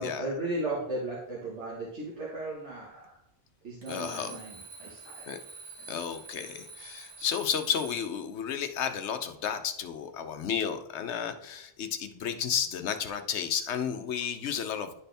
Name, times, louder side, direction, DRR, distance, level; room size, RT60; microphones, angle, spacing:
voice 1, 0.0-3.1 3.6-5.3, right 2 dB, 90° right, -6 dB, 1.8 m, -36 dB
Alarm, 3.8-8.2, right 4 dB, 45° right, 1.7 m, -47 dB
voice 2, 3.9-4.4 5.3-5.4 5.9-14.9, left 8 dB, 80° left, 8 dB, 1.0 m, -32 dB
11.0 x 4.2 x 3.4 m, 0.78 s
omnidirectional pair, 1.1 m